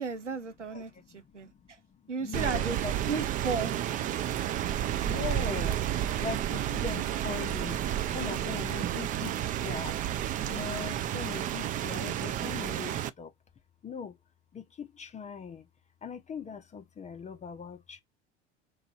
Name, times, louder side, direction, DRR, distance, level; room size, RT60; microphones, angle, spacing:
voice 1, 0.0-1.5 2.1-2.8 3.1-3.9, right 5 dB, 90° right, 0.5 m, -34 dB
voice 2, 0.7-2.9 5.0-13.3 13.8-14.2 14.5-15.7 16.0-18.0, left 6 dB, 20° left, 0.6 m, -41 dB
Rain, 2.3-13.1, right 11 dB, 25° right, 0.3 m, -31 dB
3.1 x 2.5 x 4.4 m
figure-of-eight pair, 70°, 35 cm